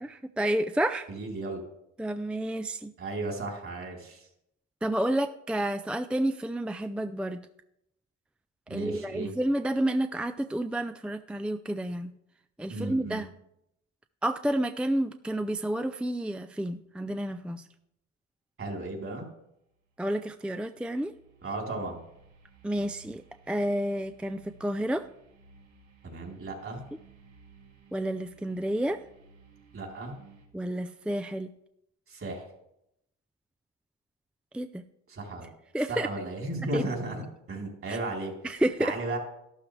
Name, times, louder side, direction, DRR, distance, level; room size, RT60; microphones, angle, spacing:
voice 1, 0.0-1.1 2.0-2.9 4.8-7.4 8.7-12.1 12.6-13.3 14.2-17.7 20.0-21.1 22.6-23.2 23.5-25.1 27.9-29.0 30.5-31.5 34.5-34.8 35.7-36.1 36.7-36.8 37.9-38.0 38.4-38.9, right 1 dB, 5° right, 8 dB, 0.4 m, -30 dB
voice 2, 1.1-1.6 3.0-4.3 8.7-9.3 12.7-13.2 18.6-19.3 21.4-22.0 26.0-26.8 29.7-30.1 32.1-32.5 35.1-35.5 35.9-38.3 38.8-39.2, right 2 dB, 45° right, 0 dB, 3.6 m, -35 dB
sound 1, 19.8-30.5, right 4 dB, 70° right, 4.9 m, -57 dB
12.5 x 12.0 x 3.3 m, 0.81 s
cardioid pair, 90°, 30 cm